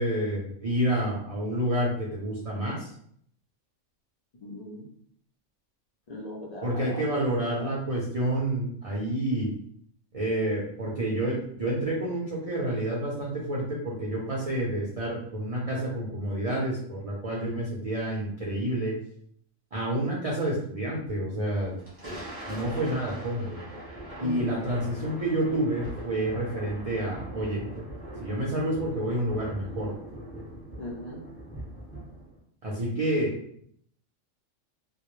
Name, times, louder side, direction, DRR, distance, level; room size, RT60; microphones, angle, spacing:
voice 1, 0.0-2.9 6.6-9.5 10.1-18.9 19.7-21.7 22.0-22.2 22.4-23.6 24.2-27.6 28.2-29.9 32.6-33.3, right 1 dB, 50° right, -5 dB, 0.4 m, -29 dB
voice 2, 4.4-4.9 6.1-7.0 7.6-7.7 24.2-24.6 30.8-31.2, equal, 65° left, -4 dB, 0.4 m, -38 dB
Thunder, 21.6-32.4, right 1 dB, 15° right, 0.7 m, -41 dB
2.2 x 2.0 x 3.0 m, 0.65 s
omnidirectional pair, 1.3 m